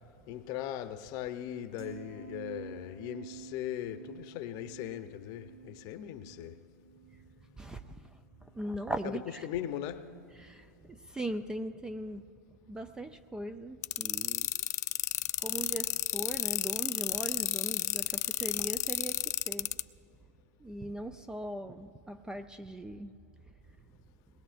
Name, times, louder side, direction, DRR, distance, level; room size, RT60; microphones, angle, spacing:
voice 1, 0.3-6.6 9.4-10.1, left 11 dB, 40° left, 0.7 m, -39 dB
sound 1, 1.8-8.1 8.4-8.7, right 7 dB, 55° right, 2.5 m, -50 dB
voice 2, 7.6-9.5 10.4-12.2 12.7-14.6 15.4-19.7 20.6-23.2, right 1 dB, 10° right, 0.4 m, -40 dB
sound 2, 13.8-19.8, left 14 dB, 70° left, 0.4 m, -31 dB
22.0 x 19.5 x 2.5 m
hypercardioid pair, 120°, 9 cm